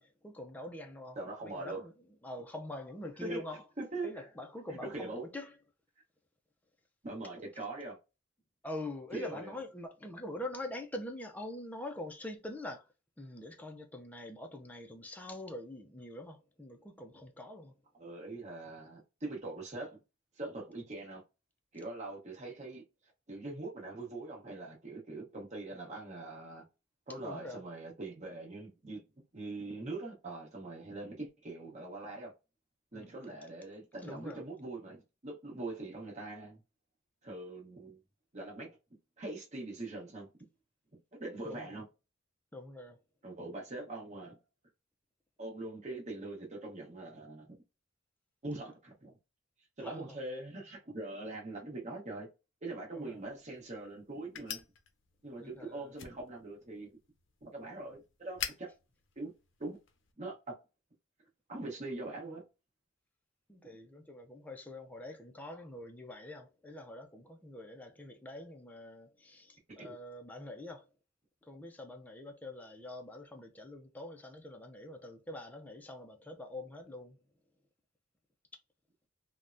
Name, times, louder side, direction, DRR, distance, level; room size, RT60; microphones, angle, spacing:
voice 1, 0.0-1.2 1.4-1.9 2.2-3.6 4.0-5.5 8.6-12.8 13.2-17.7 27.2-27.6 32.9-33.1 34.0-34.4 41.5-41.7 42.5-43.0 49.8-50.2 52.9-53.2 55.4-55.9 63.5-70.9 71.5-77.2, left 1 dB, 10° left, 0.4 m, -44 dB
voice 2, 1.2-1.8 3.2-4.1 4.7-5.2 7.0-8.0 9.1-9.6 17.9-20.0 20.4-21.2 21.7-22.8 23.3-26.7 27.1-29.0 29.3-32.3 32.9-36.6 37.2-38.0 38.3-38.8 39.2-40.3 41.2-41.9 43.2-44.4 45.4-47.5 48.4-49.1 49.8-52.3 52.6-54.6 55.2-56.9 57.4-58.7 59.2-59.3 59.6-59.8 60.2-60.6 61.5-62.4 69.8-69.9, right 2 dB, 35° right, 1.0 m, -42 dB
sound 1, 53.0-60.1, left 8 dB, 70° left, 0.6 m, -47 dB
3.4 x 2.1 x 2.5 m
head